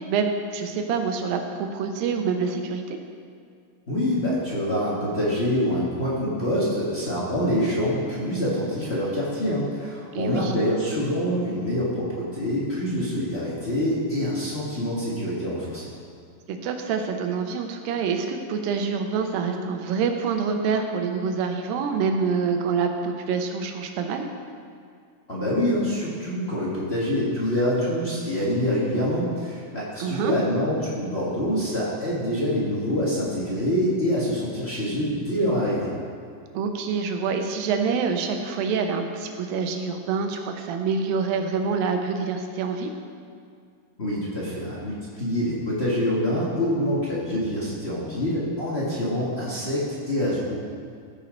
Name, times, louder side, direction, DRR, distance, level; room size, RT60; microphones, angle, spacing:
voice 1, 0.0-3.0 10.1-10.5 16.5-24.3 30.0-30.3 36.5-42.9, right 5 dB, 80° right, 5 dB, 2.6 m, -26 dB
voice 2, 3.9-15.9 25.3-35.9 44.0-50.6, equal, 55° left, -8 dB, 0.6 m, -25 dB
15.0 x 5.7 x 5.1 m, 2.3 s
omnidirectional pair, 4.1 m